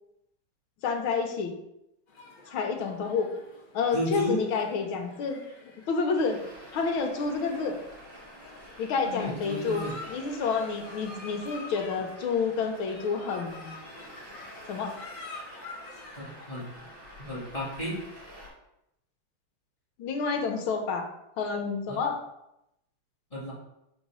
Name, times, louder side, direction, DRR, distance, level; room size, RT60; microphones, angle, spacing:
voice 1, 0.8-1.5 2.5-3.3 3.7-5.4 5.9-6.4 6.7-7.8 8.8-13.7 14.7-14.9 20.0-21.1 21.4-22.2, left 5 dB, 75° left, 3 dB, 1.8 m, -29 dB
sound 1, 2.1-16.9, left 3 dB, 45° left, 1.9 m, -48 dB
voice 2, 3.9-4.4 9.0-9.9 16.2-16.7 17.2-18.0 21.9-22.0 23.3-23.5, equal, 15° left, -7 dB, 2.0 m, -33 dB
Traffic noise roadway noise, 6.1-18.5, equal, 35° right, 3.2 m, -48 dB
5.2 x 4.7 x 6.3 m, 0.84 s
omnidirectional pair, 2.3 m